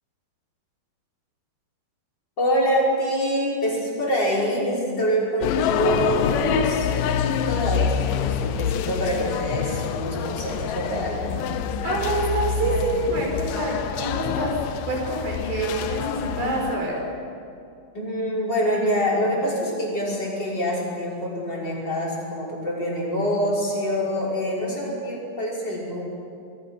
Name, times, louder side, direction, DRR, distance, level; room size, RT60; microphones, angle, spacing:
voice 1, 2.4-11.3 17.9-26.0, equal, 25° left, -5 dB, 6.1 m, -25 dB
sound 1, 5.4-16.8, left 8 dB, 75° left, 2.2 m, -26 dB
voice 2, 11.8-14.5 14.9-16.9, right 2 dB, 75° right, -1 dB, 6.9 m, -26 dB
26.0 x 22.0 x 6.0 m, 2.5 s
omnidirectional pair, 4.3 m